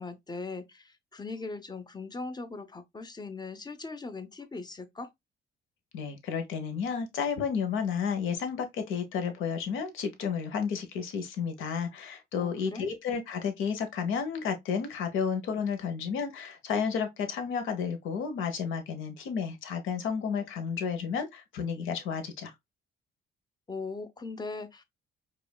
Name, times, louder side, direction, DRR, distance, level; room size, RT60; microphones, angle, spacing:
voice 1, 0.0-5.1 12.3-12.9 23.7-24.8, left 3 dB, 20° left, 0.6 m, -39 dB
voice 2, 5.9-22.5, left 6 dB, 90° left, 0.8 m, -32 dB
4.9 x 2.4 x 2.2 m
cardioid pair, 90°, 20 cm